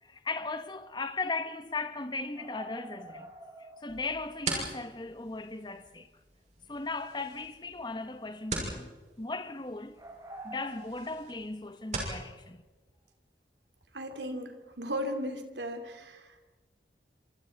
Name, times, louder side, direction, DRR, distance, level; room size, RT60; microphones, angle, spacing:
voice 1, 0.0-3.3 3.8-6.1 6.7-10.0 10.4-12.6, left 3 dB, 25° left, 1.0 m, -37 dB
sound 1, 2.3-4.1 4.4-4.5 7.0-7.7 8.1-8.4 9.9-11.4, right 1 dB, 20° right, 4.0 m, -48 dB
sound 2, 3.9-12.2, right 3 dB, 40° right, 6.0 m, -41 dB
voice 2, 13.9-16.5, equal, 80° right, 3.1 m, -36 dB
29.0 x 27.0 x 4.6 m
head